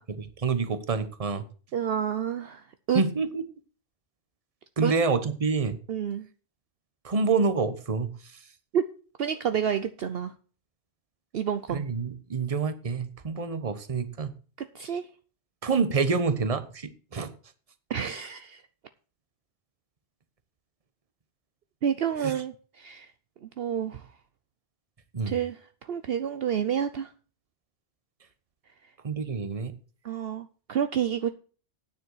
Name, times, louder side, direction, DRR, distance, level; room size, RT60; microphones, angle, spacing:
voice 1, 0.1-1.4 2.9-3.4 4.8-5.8 7.0-8.1 11.7-14.3 15.6-17.3 22.2-22.4 25.1-25.3 29.0-29.7, right 4 dB, 30° right, 1.0 m, -27 dB
voice 2, 1.7-3.0 4.8-4.9 5.9-6.3 8.7-8.8 9.2-10.3 11.3-11.9 14.6-15.1 17.9-18.6 21.8-23.1 23.4-24.1 25.3-25.6 25.9-27.1 30.0-31.3, right 8 dB, 60° right, 0.9 m, -29 dB
9.5 x 7.4 x 6.3 m
omnidirectional pair, 1.2 m